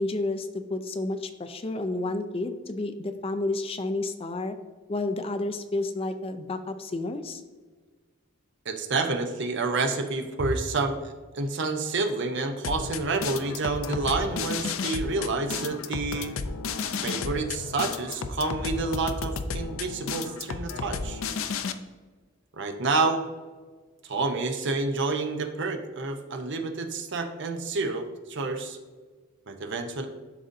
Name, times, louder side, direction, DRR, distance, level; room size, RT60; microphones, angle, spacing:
voice 1, 0.0-4.6 4.9-7.4, left 2 dB, 25° left, 8 dB, 0.4 m, -30 dB
voice 2, 8.6-11.0 11.3-16.4 17.0-21.2 22.5-23.3 24.0-28.8 29.5-30.1, right 3 dB, 60° right, 6 dB, 0.7 m, -29 dB
sound 1, 12.6-21.7, left 5 dB, 75° left, 0.5 m, -33 dB
11.5 x 3.9 x 2.6 m, 1.4 s
head